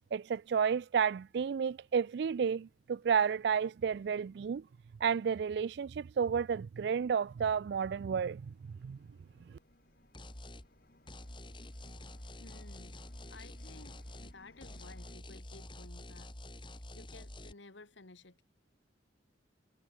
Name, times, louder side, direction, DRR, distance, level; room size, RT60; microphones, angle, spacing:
voice 1, 0.1-4.7 5.0-9.0 9.5-9.6, right 7 dB, 60° right, 0.3 m, -32 dB
sound 1, 6.6-15.2, left 1 dB, 55° left, 6.5 m, -64 dB
sound 2, 10.1-10.7 11.1-14.4 14.6-17.5, left 1 dB, 25° left, 3.4 m, -48 dB
voice 2, 12.4-13.0 13.3-16.3 16.7-18.4, left 3 dB, 85° left, 1.8 m, -55 dB
head